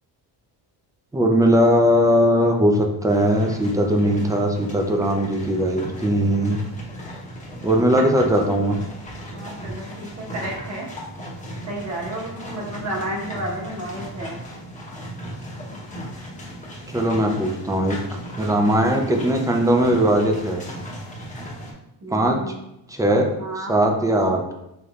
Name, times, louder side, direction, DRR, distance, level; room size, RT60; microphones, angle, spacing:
voice 1, 1.1-6.6 7.6-8.8 16.9-18.0 18.4-20.6 22.1-22.5 22.9-23.3 23.7-24.4, equal, 10° right, 2 dB, 0.5 m, -19 dB
sound 1, 3.1-21.7, equal, 15° left, 0.9 m, -36 dB
voice 2, 9.3-10.9 11.7-14.4 22.0-22.5 23.4-23.8, right 1 dB, 35° right, -3 dB, 1.3 m, -31 dB
5.2 x 3.1 x 2.4 m, 0.86 s
cardioid pair, 125°, 44 cm